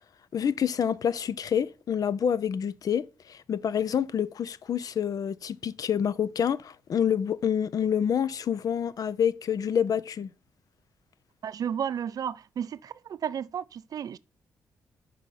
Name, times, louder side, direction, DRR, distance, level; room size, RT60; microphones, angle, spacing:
voice 1, 0.3-10.3, left 8 dB, 55° left, 0.4 m, -27 dB
voice 2, 11.4-14.2, right 8 dB, 55° right, 0.3 m, -33 dB
5.2 x 4.9 x 4.2 m
hypercardioid pair, 45°, 8 cm